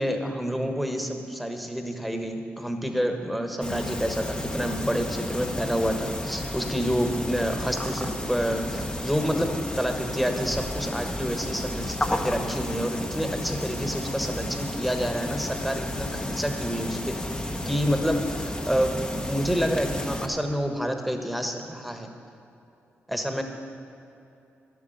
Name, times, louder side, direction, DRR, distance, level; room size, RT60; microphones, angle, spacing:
voice 1, 0.0-22.1 23.1-23.4, equal, ahead, 5 dB, 1.4 m, -28 dB
sound 1, 3.6-20.3, left 1 dB, 20° left, 1.0 m, -32 dB
11.0 x 8.3 x 8.0 m, 2.8 s
cardioid pair, 75°, 5 cm